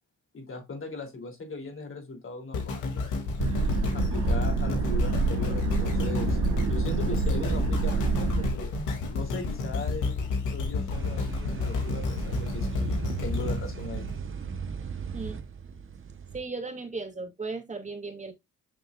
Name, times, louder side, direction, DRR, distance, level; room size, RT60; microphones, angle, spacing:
voice 1, 0.3-3.1 3.9-8.7 9.1-10.1 10.5-14.1, left 3 dB, 45° left, 3.4 m, -39 dB
sound 1, 2.5-14.7 15.3-15.4, left 4 dB, 85° left, 2.8 m, -31 dB
sound 2, 3.4-8.5, right 4 dB, 60° right, 2.0 m, -27 dB
sound 3, 10.9-16.4, right 6 dB, 45° right, 1.2 m, -36 dB
voice 2, 16.3-18.3, right 3 dB, 25° right, 2.6 m, -36 dB
7.7 x 6.3 x 2.5 m
cardioid pair, 90°, 30 cm